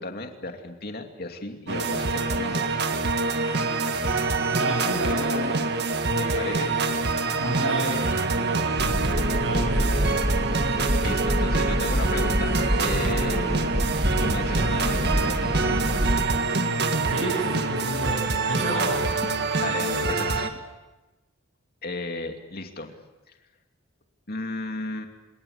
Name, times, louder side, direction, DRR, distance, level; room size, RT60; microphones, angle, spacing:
voice 1, 0.0-2.6 6.2-6.7 7.2-7.4 11.0-13.7 14.1-16.0 19.6-20.5 21.8-23.0 24.3-25.1, left 2 dB, 45° left, 4 dB, 2.7 m, -34 dB
sound 1, 1.7-20.5, right 3 dB, 50° right, 1.8 m, -25 dB
voice 2, 4.5-5.6 6.0-6.7 7.2-8.8 9.4-10.1 17.1-19.1, right 1 dB, 70° right, -2 dB, 7.2 m, -31 dB
sound 2, 8.8-16.2, equal, 20° right, 2.6 m, -27 dB
29.5 x 19.0 x 8.4 m, 1.1 s
head